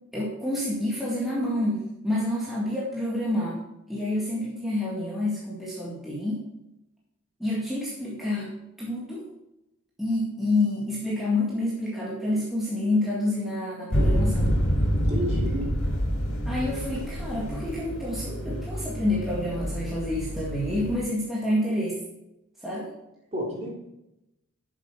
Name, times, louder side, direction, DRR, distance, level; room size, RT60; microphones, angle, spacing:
voice 1, 0.1-3.6 3.9-6.4 7.4-8.5 8.8-9.2 10.0-14.6 16.4-22.0 22.6-22.9, left 1 dB, ahead, -6 dB, 2.0 m, -28 dB
sound 1, 13.9-21.0, equal, 70° left, 3.3 m, -27 dB
voice 2, 14.9-15.7 23.3-23.7, equal, 30° right, -3 dB, 3.3 m, -31 dB
11.5 x 7.3 x 5.0 m, 0.89 s
head